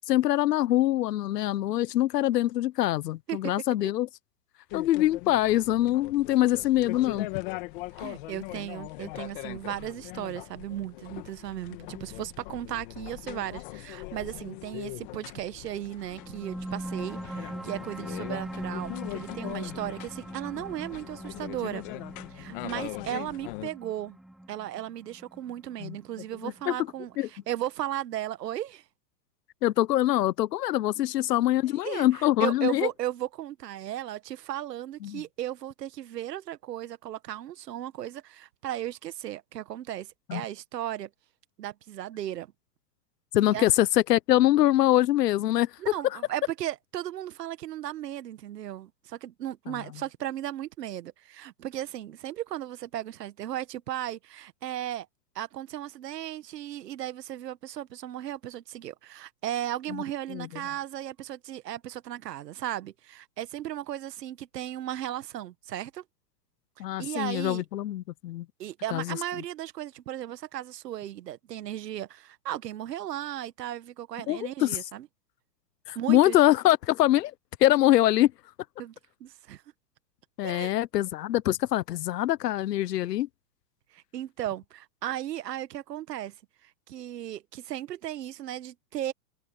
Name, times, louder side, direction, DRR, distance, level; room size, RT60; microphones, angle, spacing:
voice 1, 0.1-4.1 4.7-7.3 25.8-26.0 26.4-26.9 27.2-27.3 29.6-32.9 35.0-35.2 40.3-40.4 43.3-45.8 46.0-46.2 59.9-60.0 60.3-60.5 66.8-68.5 68.9-69.2 74.3-74.8 75.9-77.3 77.6-78.3 80.4-83.3, left 14 dB, 85° left, 1.0 m, -24 dB
sound 1, 4.7-23.7, left 21 dB, 35° left, 2.1 m, -41 dB
voice 2, 8.0-21.8 22.3-24.2 24.5-28.8 31.8-32.1 32.4-41.1 41.6-42.5 43.5-43.7 45.8-55.1 55.4-66.0 67.0-67.6 68.6-75.1 76.0-76.4 78.8-79.0 79.2-79.6 80.4-80.7 83.9-86.3 86.6-89.1, right 12 dB, 90° right, 1.7 m, -36 dB
sound 2, 16.1-27.0, right 1 dB, ahead, 1.0 m, -41 dB
open air
supercardioid pair, 175°, 47 cm